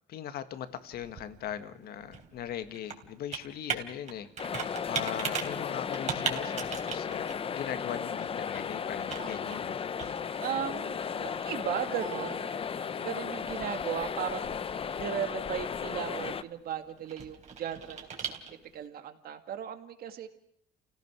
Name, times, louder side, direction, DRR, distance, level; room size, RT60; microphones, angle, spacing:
voice 1, 0.1-4.3 4.8-9.8, left 10 dB, 70° left, 10 dB, 1.8 m, -39 dB
Computer keyboard, 0.6-18.8, right 6 dB, 45° right, 3.6 m, -41 dB
sound 1, 4.4-16.4, left 7 dB, 35° left, 0.8 m, -35 dB
voice 2, 10.4-12.5 12.9-18.4 18.7-20.3, right 9 dB, 65° right, 8 dB, 2.2 m, -36 dB
29.0 x 17.0 x 6.2 m, 0.66 s
cardioid pair, 110°, 17 cm